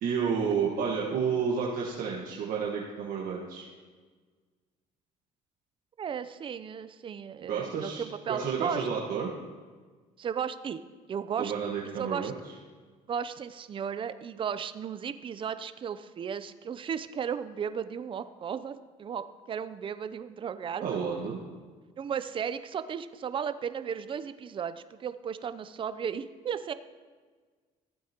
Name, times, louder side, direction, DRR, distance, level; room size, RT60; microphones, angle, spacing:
voice 1, 0.0-3.7 7.4-9.3 11.4-12.3 20.8-21.4, right 6 dB, 65° right, -3 dB, 1.3 m, -31 dB
voice 2, 6.0-8.9 10.2-10.8 11.1-11.5 12.0-12.3 13.1-21.0 22.0-26.7, right 7 dB, 35° right, 12 dB, 0.5 m, -35 dB
15.0 x 8.6 x 2.9 m, 1.5 s
cardioid pair, 95°, 15 cm